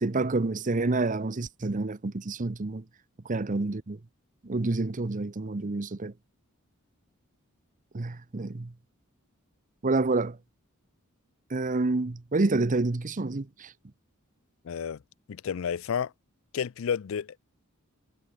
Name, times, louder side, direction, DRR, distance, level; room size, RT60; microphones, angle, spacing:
voice 1, 0.0-2.8 3.2-4.0 4.4-6.1 7.9-8.7 9.8-10.4 11.5-13.7, right 3 dB, 40° right, 0.8 m, -28 dB
voice 2, 14.6-15.0 15.3-16.1 16.5-17.4, left 7 dB, 65° left, 0.4 m, -31 dB
head